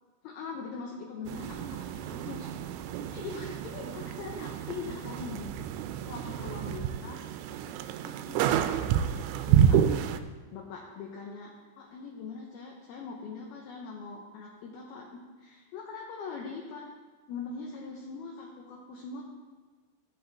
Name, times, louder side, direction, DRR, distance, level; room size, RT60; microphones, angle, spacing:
voice 1, 0.2-2.5 3.1-5.7 6.1-7.2 8.0-8.6 9.5-9.8 10.5-16.9 17.3-19.2, left 5 dB, 75° left, -1 dB, 2.3 m, -42 dB
sound 1, 1.3-10.2, right 9 dB, 90° right, 3.0 m, -29 dB
15.5 x 7.8 x 3.4 m, 1.4 s
omnidirectional pair, 5.3 m